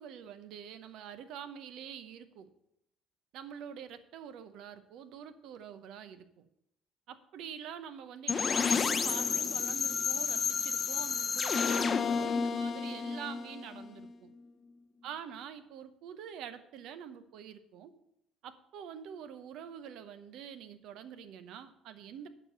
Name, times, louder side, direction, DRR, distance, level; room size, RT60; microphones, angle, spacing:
voice 1, 0.0-2.5 3.3-6.5 7.1-14.3 15.0-17.9 18.4-22.3, right 8 dB, 65° right, 11 dB, 0.8 m, -46 dB
sound 1, 8.3-14.1, left 5 dB, 40° left, 0.7 m, -31 dB
8.9 x 6.4 x 6.6 m, 0.79 s
hypercardioid pair, 60°, 0 cm